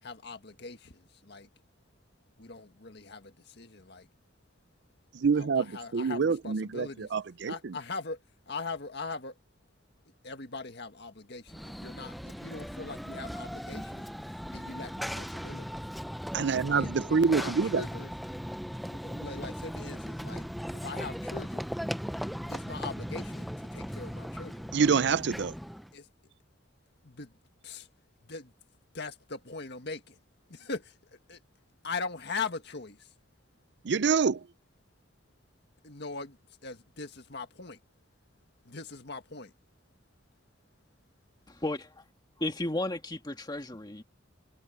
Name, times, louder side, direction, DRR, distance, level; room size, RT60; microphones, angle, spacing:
voice 1, 0.0-1.5 2.4-4.1 5.3-7.1 7.4-9.4 10.2-15.7 16.7-18.1 18.8-20.4 20.7-21.7 22.5-24.7 25.9-26.1 27.0-27.9 28.2-28.5 28.9-30.2 30.5-31.4 31.8-33.1 35.8-37.8 38.6-39.5, left 4 dB, 60° left, 1.8 m, -41 dB
voice 2, 5.1-7.5 16.3-17.8 24.7-25.5 33.8-34.4, right 5 dB, 60° right, 0.5 m, -26 dB
Run / Train, 11.5-25.9, equal, ahead, 0.5 m, -38 dB
voice 3, 41.5-41.8 42.4-44.0, left 1 dB, 20° left, 1.6 m, -33 dB
head